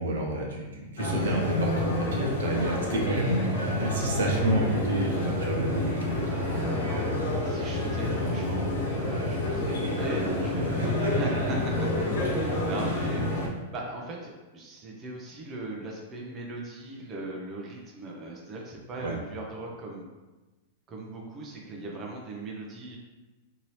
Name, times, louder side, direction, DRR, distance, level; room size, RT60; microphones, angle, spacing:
voice 1, 0.0-6.3 10.8-11.1 19.0-19.1, right 1 dB, 85° right, -1 dB, 0.8 m, -30 dB
sound 1, 1.0-13.5, left 1 dB, 80° left, 0.9 m, -28 dB
voice 2, 6.1-20.1 20.9-23.0, right 2 dB, 25° right, -2 dB, 0.5 m, -38 dB
2.7 x 2.7 x 3.1 m, 1.2 s
supercardioid pair, 150°, 0 cm